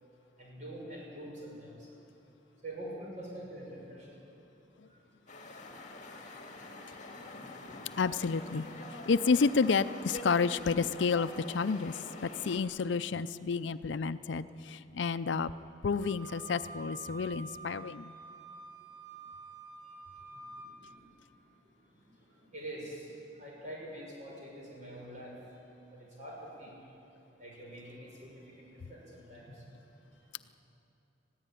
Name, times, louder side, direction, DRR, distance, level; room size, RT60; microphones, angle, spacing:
voice 1, 0.4-1.7 2.6-4.1 4.9-5.0 20.3-21.1 22.3-23.1 23.4-25.3 25.9-26.8 27.4-29.6, right 1 dB, 40° right, -3 dB, 6.9 m, -45 dB
sound 1, 5.3-12.6, left 2 dB, 40° left, 2.1 m, -45 dB
voice 2, 8.0-8.6 9.1-15.5 15.8-18.1, left 5 dB, 70° left, 14 dB, 0.5 m, -30 dB
Wind instrument woodwind instrument, 16.0-20.7, right 3 dB, 75° right, 5.4 m, -48 dB
21.0 x 15.0 x 9.1 m, 2.9 s
head